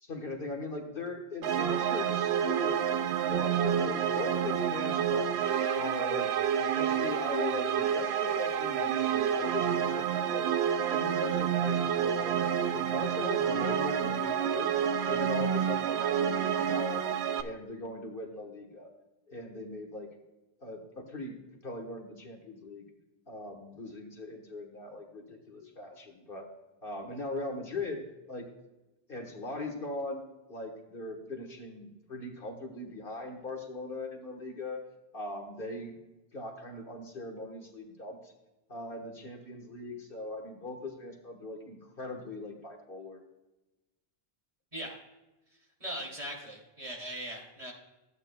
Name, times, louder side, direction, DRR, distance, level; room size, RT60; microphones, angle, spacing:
voice 1, 0.0-2.8 3.2-5.3 5.7-6.3 6.6-10.5 10.9-12.4 12.7-14.7 15.1-17.0 17.4-18.9 19.3-20.1 20.6-21.4 21.6-22.8 23.3-26.5 26.8-28.5 29.1-30.2 30.5-34.8 35.1-36.0 36.3-38.3 38.7-43.2, left 2 dB, 60° left, 2 dB, 1.5 m, -39 dB
sound 1, 1.4-17.4, right 8 dB, 90° right, 0.9 m, -29 dB
voice 2, 45.8-47.7, equal, 35° right, -1 dB, 2.6 m, -39 dB
14.0 x 8.9 x 2.2 m, 1.0 s
omnidirectional pair, 1.1 m